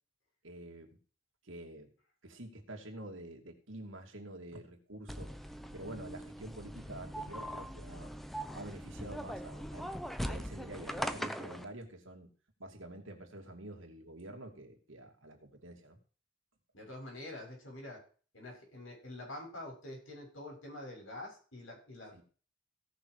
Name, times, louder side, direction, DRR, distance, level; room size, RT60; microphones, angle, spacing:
voice 1, 0.4-1.0 1.4-1.9 2.2-5.3 5.7-8.1 8.5-9.9 10.2-12.3 12.6-16.0 22.1-22.2, right 1 dB, 80° right, 2 dB, 2.7 m, -48 dB
sound 1, 5.1-11.6, equal, ahead, 0.7 m, -41 dB
voice 2, 16.7-18.0 18.3-22.2, left 1 dB, 80° left, 0 dB, 6.7 m, -46 dB
17.0 x 6.3 x 4.9 m, 0.40 s
head